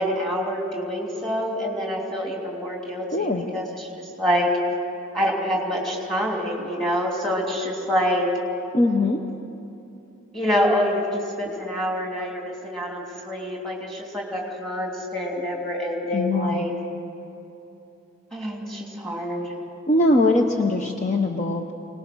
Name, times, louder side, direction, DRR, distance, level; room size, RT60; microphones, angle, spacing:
voice 1, 0.0-4.5 5.1-8.3 10.3-16.7 18.3-19.5, equal, ahead, -1 dB, 3.0 m, -26 dB
voice 2, 3.1-3.5 8.7-9.2 16.1-16.7 19.9-21.7, left 2 dB, 35° left, 3 dB, 0.8 m, -21 dB
24.5 x 19.0 x 6.2 m, 2.9 s
head